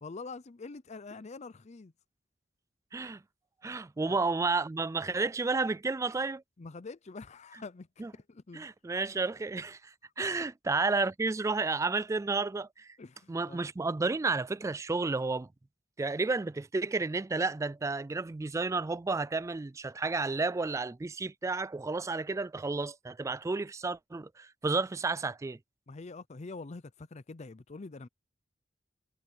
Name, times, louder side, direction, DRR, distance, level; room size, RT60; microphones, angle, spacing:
voice 1, 0.0-1.9 4.1-4.2 6.6-7.9 8.1-8.7 13.0-13.6 25.9-28.1, left 3 dB, 35° left, 0.5 m, -45 dB
voice 2, 2.9-3.2 3.6-6.4 8.0-8.1 8.5-13.0 13.3-15.5 16.0-25.6, right 3 dB, 15° right, 0.3 m, -31 dB
head